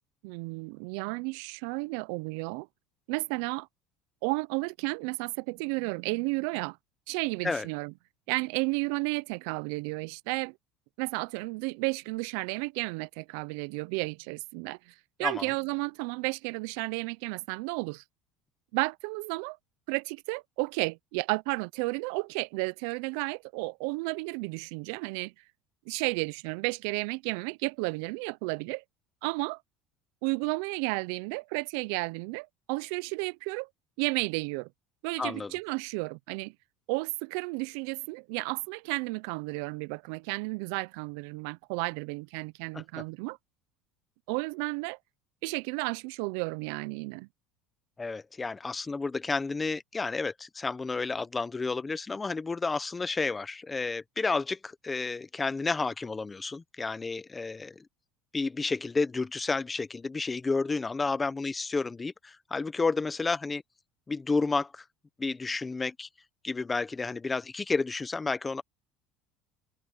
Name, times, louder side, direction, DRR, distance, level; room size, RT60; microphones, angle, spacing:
voice 1, 0.2-2.7 3.1-3.7 4.2-6.8 7.1-7.9 8.3-10.5 11.0-18.0 18.7-19.6 19.9-25.3 25.9-28.8 29.2-29.6 30.2-33.7 34.0-34.7 35.0-36.5 36.9-43.4 44.3-45.0 45.4-47.3, right 27 dB, 70° right, 0.3 m, -32 dB
voice 2, 35.2-35.5 42.7-42.8 48.0-57.8 58.3-63.6 64.1-64.8 65.2-66.1 66.4-68.6, left 4 dB, 10° left, 0.6 m, -31 dB
cardioid pair, 175°, 0 cm